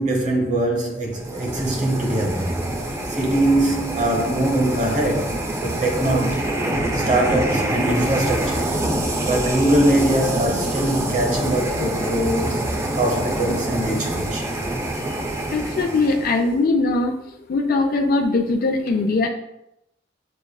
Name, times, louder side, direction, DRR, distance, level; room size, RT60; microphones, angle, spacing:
voice 1, 0.0-2.6 3.1-6.5 6.9-8.8 9.2-12.6 12.9-14.5, right 1 dB, 40° right, 0.9 m, -22 dB
sound 1, 1.1-16.5, right 1 dB, 15° right, 0.4 m, -25 dB
voice 2, 15.5-17.1 17.5-19.3, left 3 dB, 50° left, 0.4 m, -20 dB
6.7 x 2.4 x 2.3 m
head